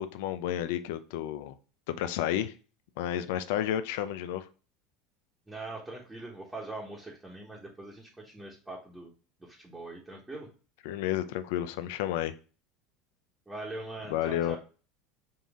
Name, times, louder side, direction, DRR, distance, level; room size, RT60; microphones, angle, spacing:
voice 1, 0.0-1.6 1.9-2.5 3.0-4.5 10.8-12.3 14.1-14.6, left 11 dB, 75° left, 11 dB, 0.4 m, -31 dB
voice 2, 5.5-9.1 9.4-10.5 13.5-14.6, right 2 dB, 10° right, -4 dB, 1.2 m, -42 dB
5.4 x 2.6 x 3.6 m, 0.36 s
supercardioid pair, 100°, 0 cm